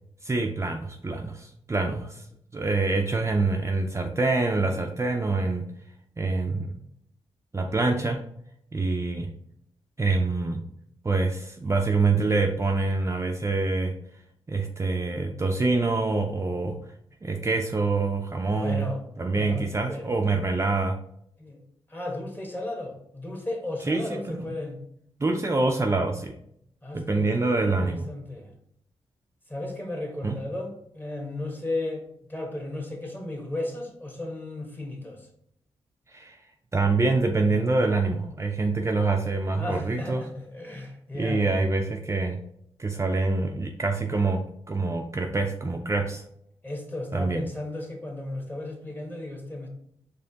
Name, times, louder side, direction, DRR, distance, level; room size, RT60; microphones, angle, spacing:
voice 1, 0.2-2.2 2.5-5.7 6.2-6.8 7.5-8.2 8.7-9.3 10.0-10.6 11.0-13.9 14.5-16.8 17.2-18.9 19.2-21.0 23.9-24.4 25.2-26.4 26.9-28.0 30.2-30.4 36.1-36.4 36.7-40.3 41.1-42.4 42.8-46.2 47.1-47.5, right 3 dB, 25° right, 3 dB, 0.4 m, -25 dB
voice 2, 7.6-8.1 18.6-20.1 20.4-20.5 21.4-21.6 21.9-24.8 26.8-28.5 29.5-32.0 32.3-35.3 39.6-41.4 46.6-49.7, left 2 dB, 20° left, 1 dB, 1.3 m, -35 dB
4.2 x 3.1 x 2.8 m, 0.70 s
cardioid pair, 50°, 11 cm